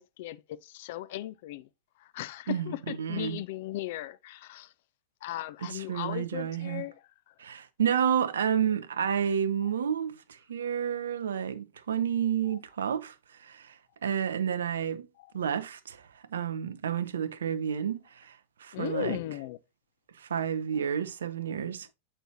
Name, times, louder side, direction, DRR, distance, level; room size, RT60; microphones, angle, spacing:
voice 1, 0.0-1.7 2.0-4.7 5.2-7.3 9.6-9.7 12.5-12.6 15.2-15.3 18.7-19.6, left 15 dB, 50° left, 0.4 m, -37 dB
voice 2, 2.5-3.4 5.7-6.8 7.4-13.1 13.4-15.1 15.3-19.2 20.2-21.9, right 8 dB, 65° right, 0.5 m, -30 dB
7.9 x 4.4 x 2.8 m
figure-of-eight pair, 90°, 0 cm